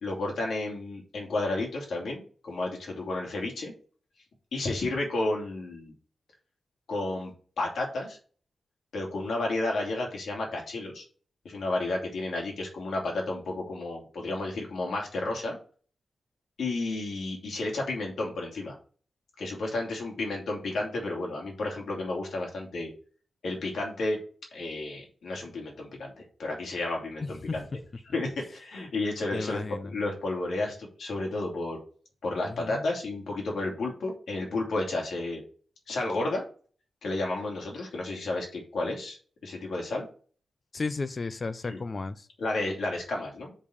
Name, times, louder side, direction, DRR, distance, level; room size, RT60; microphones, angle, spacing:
voice 1, 0.0-3.7 4.5-5.9 6.9-8.2 8.9-11.0 11.4-15.6 16.6-18.7 19.4-22.9 23.4-24.2 24.5-27.6 28.1-31.8 32.2-35.4 35.9-36.4 37.0-39.2 39.4-40.1 41.6-41.8 42.4-43.5, left 2 dB, 85° left, 2.6 m, -32 dB
voice 2, 27.2-27.6 29.3-29.9 32.4-32.9 40.7-42.3, left 3 dB, 40° left, 0.6 m, -34 dB
5.3 x 5.3 x 6.5 m
wide cardioid pair, 120°, 0 cm